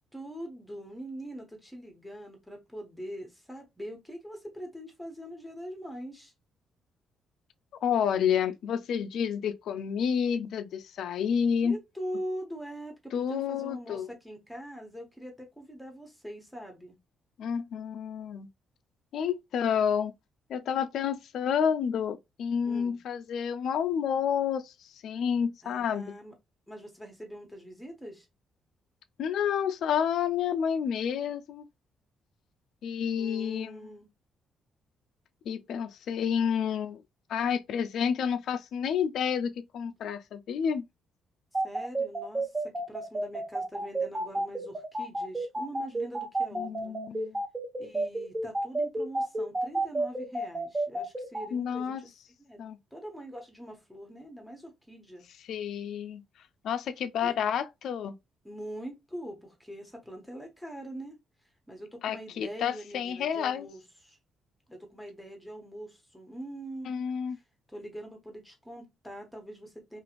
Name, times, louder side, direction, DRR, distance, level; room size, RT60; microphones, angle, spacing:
voice 1, 0.1-6.3 11.5-17.0 22.6-23.0 25.6-26.3 26.7-28.3 33.2-34.1 41.6-47.0 47.8-52.1 52.4-52.6 52.9-55.2 57.2-57.3 58.4-61.2 61.7-64.2 64.7-66.9 67.7-70.0, equal, 5° left, 1.1 m, -43 dB
voice 2, 7.8-11.8 13.1-14.1 17.4-18.5 19.1-20.1 20.5-26.1 29.2-31.7 32.8-33.8 35.5-37.0 37.3-40.9 46.5-47.4 51.5-52.0 52.6-52.8 55.5-56.2 56.6-58.1 62.0-63.7 66.8-67.4, left 8 dB, 70° left, 0.3 m, -29 dB
sound 1, 41.5-51.5, right 2 dB, 25° right, 0.8 m, -30 dB
2.5 x 2.4 x 2.9 m
cardioid pair, 90°, 0 cm